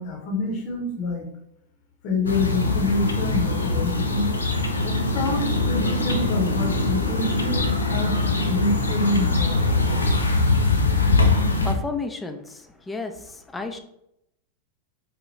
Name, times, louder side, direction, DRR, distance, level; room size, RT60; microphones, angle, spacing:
voice 1, 0.0-1.3 2.0-4.3 4.8-8.1 8.5-10.2, left 3 dB, 45° left, 1 dB, 0.9 m, -27 dB
sound 1, 2.3-11.7, left 3 dB, 75° left, 0.5 m, -22 dB
voice 2, 11.6-13.8, left 3 dB, 10° left, 5 dB, 0.4 m, -32 dB
4.2 x 2.2 x 3.2 m, 0.79 s
figure-of-eight pair, 90°, 0 cm